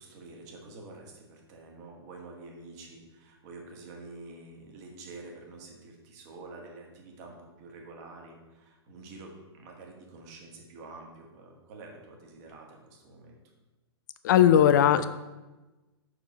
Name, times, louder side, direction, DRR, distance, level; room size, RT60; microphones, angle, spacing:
voice 1, 0.0-13.4, right 3 dB, 40° right, 1 dB, 1.4 m, -47 dB
voice 2, 14.2-15.0, left 10 dB, 45° left, 12 dB, 0.4 m, -18 dB
5.3 x 4.6 x 5.1 m, 1.1 s
figure-of-eight pair, 110°, 14 cm